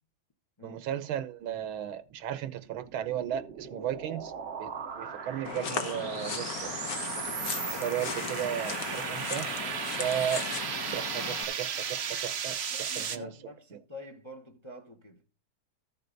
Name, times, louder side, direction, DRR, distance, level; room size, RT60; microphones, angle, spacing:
voice 1, 0.6-4.3 4.6-6.7 7.7-9.5 10.0-10.4 10.9-13.3, right 10 dB, 85° right, 1.7 m, -35 dB
sound 1, 2.6-13.2, right 7 dB, 60° right, 0.6 m, -36 dB
sound 2, 5.4-11.4, left 7 dB, 55° left, 1.2 m, -37 dB
voice 2, 12.7-15.2, left 2 dB, 20° left, 0.8 m, -47 dB
14.0 x 6.9 x 3.9 m
omnidirectional pair, 2.2 m